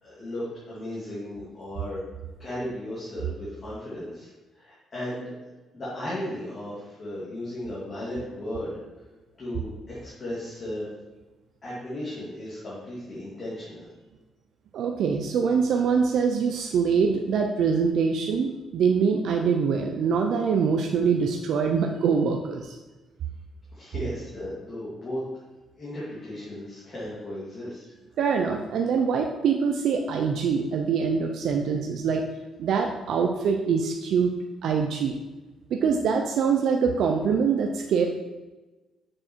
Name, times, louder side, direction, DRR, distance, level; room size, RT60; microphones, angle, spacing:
voice 1, 0.0-2.0 2.4-5.3 5.7-8.7 9.4-10.9 11.6-13.9 23.7-25.2 25.8-27.9, left 1 dB, 30° left, -9 dB, 2.3 m, -35 dB
voice 2, 14.7-22.8 28.2-32.2 32.6-34.3 34.6-35.2 35.7-38.1, right 6 dB, 60° right, 3 dB, 0.6 m, -24 dB
6.3 x 6.3 x 4.5 m, 1.2 s
cardioid pair, 160°, 0 cm